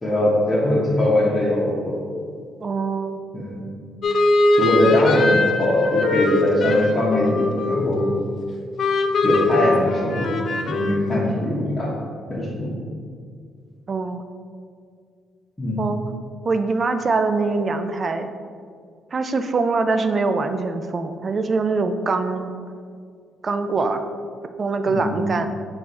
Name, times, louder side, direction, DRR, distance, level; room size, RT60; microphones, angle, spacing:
voice 1, 0.0-2.0 3.3-3.6 4.6-8.0 9.2-10.4 10.6-11.9 12.3-12.7 15.6-15.8 24.9-25.3, left 1 dB, 25° left, -9 dB, 1.0 m, -21 dB
voice 2, 2.6-3.2 13.9-14.2 15.8-16.0 16.4-18.3 19.1-22.5 23.4-24.1 24.6-25.5, right 3 dB, 40° right, 8 dB, 0.3 m, -23 dB
sound 1, 4.0-8.4 8.8-11.1, left 2 dB, 55° left, 0.4 m, -21 dB
4.7 x 2.5 x 4.0 m, 2.1 s
cardioid pair, 90°, 0 cm